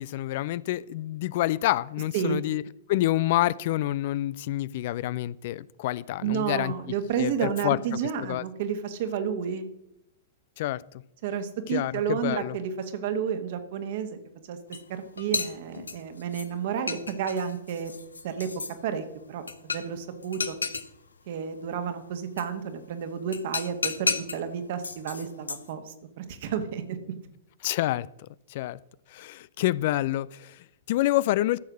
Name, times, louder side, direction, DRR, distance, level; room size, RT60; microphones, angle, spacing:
voice 1, 0.0-2.6 2.9-6.7 7.2-7.8 8.2-8.4 10.6-11.0 11.7-12.6 27.6-28.8 29.1-31.6, left 15 dB, 50° left, 20 dB, 0.3 m, -28 dB
voice 2, 6.2-9.7 11.2-14.2 14.5-14.6 14.9-17.9 18.2-18.5 18.8-20.6 21.3-26.8, right 7 dB, 50° right, 8 dB, 1.5 m, -31 dB
sound 1, 14.7-14.8 15.2-16.5 16.9-18.7 19.5-20.0 20.2-20.9 22.4-22.5 23.3-24.4 24.8-25.7, left 4 dB, 80° left, 0.9 m, -32 dB
14.0 x 6.5 x 6.2 m, 0.80 s
figure-of-eight pair, 105°, 0 cm